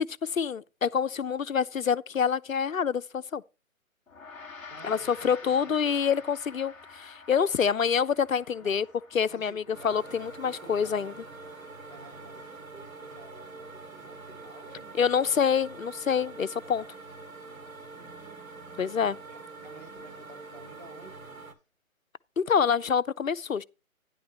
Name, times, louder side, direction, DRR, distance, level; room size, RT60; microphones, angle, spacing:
voice 1, 0.0-3.4 4.8-8.9 9.1-11.1 15.0-16.8 18.8-19.2 22.4-23.6, left 7 dB, 70° left, 0.7 m, -26 dB
Gong, 4.1-13.7, left 4 dB, 5° left, 1.5 m, -50 dB
voice 2, 4.7-6.2 8.6-8.8 9.3-10.0 10.4-11.2 11.9-15.4 17.2-18.4 19.3-21.2, right 2 dB, 40° right, 3.6 m, -52 dB
sound 1, 9.7-21.5, right 3 dB, 75° right, 2.6 m, -45 dB
12.0 x 10.5 x 2.9 m
figure-of-eight pair, 145°, 42 cm